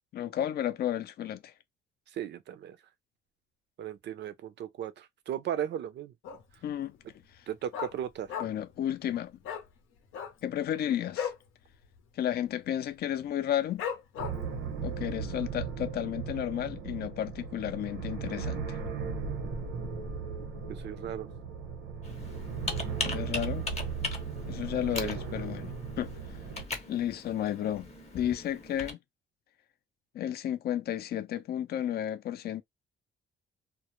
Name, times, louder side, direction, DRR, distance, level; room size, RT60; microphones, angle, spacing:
voice 1, 0.1-1.5 6.6-7.0 8.4-9.4 10.4-11.3 12.2-13.8 14.8-18.8 23.0-23.7 24.5-26.1 26.9-27.9 28.1-29.0 30.1-32.6, left 11 dB, 55° left, 0.4 m, -32 dB
voice 2, 2.1-2.8 3.8-6.1 7.5-8.3 20.7-21.3 25.0-25.2, right 10 dB, 60° right, 0.5 m, -36 dB
Dog, 6.2-6.7 7.0-7.1 7.3-8.8 9.0-9.1 9.4-9.7 10.0-11.5 11.8-12.0 12.2-12.7 13.1-13.2 13.8-14.6 15.1-15.2, left 8 dB, 85° left, 0.7 m, -36 dB
sound 1, 14.2-26.6, right 6 dB, 90° right, 0.8 m, -37 dB
Computer keyboard, 22.0-28.9, left 3 dB, 35° left, 0.8 m, -39 dB
2.1 x 2.0 x 2.9 m
cardioid pair, 90°, 20 cm